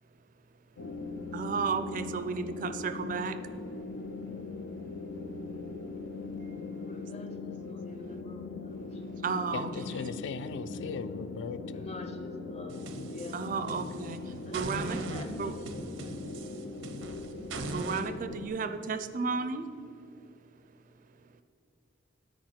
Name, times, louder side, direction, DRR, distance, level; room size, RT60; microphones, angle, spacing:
sound 1, 0.8-18.5, left 3 dB, 90° left, 0.7 m, -40 dB
voice 1, 1.3-3.3 9.2-9.7 13.3-14.2 14.5-15.0 15.4-15.5 17.7-19.6, right 5 dB, 45° right, 10 dB, 0.4 m, -33 dB
voice 2, 6.8-9.5 10.7-10.9 11.7-13.5 14.0-14.1 14.5-14.7 15.1-15.6 16.0-16.5, left 2 dB, 35° left, 7 dB, 0.7 m, -47 dB
voice 3, 9.5-11.9, left 5 dB, 65° left, 12 dB, 0.3 m, -38 dB
sound 2, 12.7-14.1 14.5-18.1, right 2 dB, 80° right, 0.6 m, -40 dB
9.8 x 4.5 x 5.9 m, 2.6 s
head